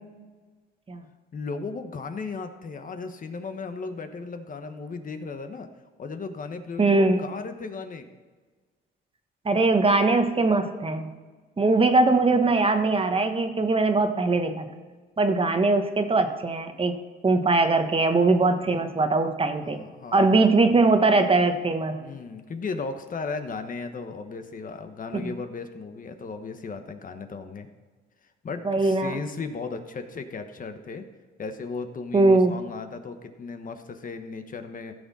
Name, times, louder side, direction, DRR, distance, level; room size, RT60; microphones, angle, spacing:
voice 1, 1.3-5.7 6.0-8.1 19.6-20.9 22.0-27.7 28.4-31.0 31.4-34.9, left 4 dB, 45° left, 7 dB, 1.2 m, -36 dB
voice 2, 6.8-7.2 9.4-11.1 11.6-14.7 15.2-17.0 17.2-19.8 20.1-22.0 25.1-25.3 28.6-29.2 32.1-32.5, right 3 dB, 30° right, 7 dB, 1.2 m, -21 dB
15.5 x 6.4 x 4.2 m, 1.4 s
cardioid pair, 90°, 20 cm